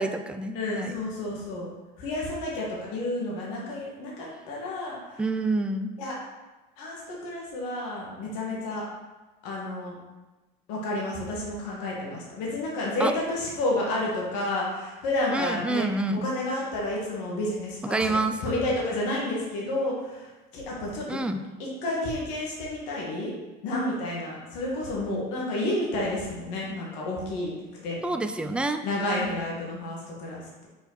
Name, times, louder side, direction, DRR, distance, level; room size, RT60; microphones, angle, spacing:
voice 1, 0.0-1.0 5.2-5.9 13.0-13.1 15.3-16.3 17.8-18.4 21.1-21.4 28.0-28.8, right 2 dB, 5° right, 7 dB, 0.4 m, -27 dB
voice 2, 0.5-1.7 2.0-5.2 6.0-6.2 6.8-8.8 9.4-9.9 10.7-15.9 16.2-20.3 20.5-21.1 21.8-23.3 23.6-27.5 27.8-28.0 28.8-30.7, left 1 dB, 85° left, -4 dB, 1.7 m, -30 dB
5.8 x 4.5 x 4.0 m, 1.2 s
supercardioid pair, 110°, 21 cm